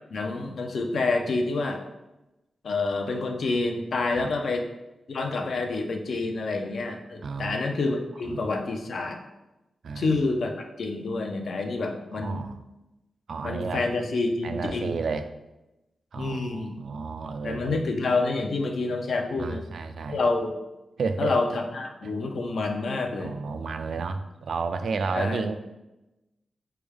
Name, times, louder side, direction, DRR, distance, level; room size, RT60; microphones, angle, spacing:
voice 1, 0.1-1.8 2.6-4.7 5.1-9.2 10.0-10.5 10.8-12.5 13.4-14.9 16.2-16.8 17.4-19.6 20.1-20.6 21.2-23.4 25.1-25.4, left 3 dB, 65° left, 3 dB, 0.5 m, -28 dB
voice 2, 7.2-7.8 8.2-8.5 9.8-10.1 12.1-12.6 13.3-13.8 14.4-15.3 16.1-17.8 19.4-20.2 21.0-21.4 22.0-22.1 23.2-25.5, right 4 dB, 70° right, 9 dB, 0.3 m, -32 dB
4.3 x 3.4 x 3.5 m, 0.99 s
wide cardioid pair, 120°, 0 cm